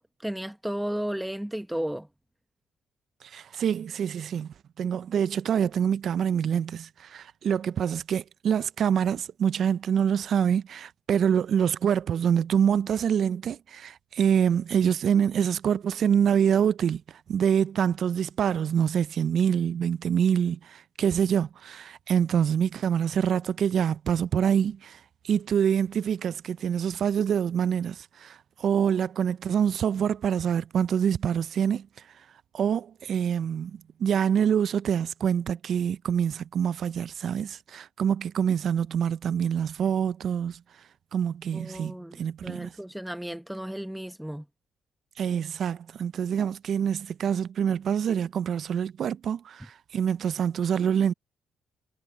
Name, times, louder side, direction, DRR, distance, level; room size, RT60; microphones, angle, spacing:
voice 1, 0.0-2.1 41.5-44.5, right 1 dB, 5° right, 1.0 m, -34 dB
voice 2, 3.3-4.5 4.8-17.0 17.3-25.0 25.2-31.9 32.5-40.6 41.1-42.7 45.2-51.1, right 8 dB, 60° right, 0.5 m, -26 dB
cardioid pair, 90°, 0 cm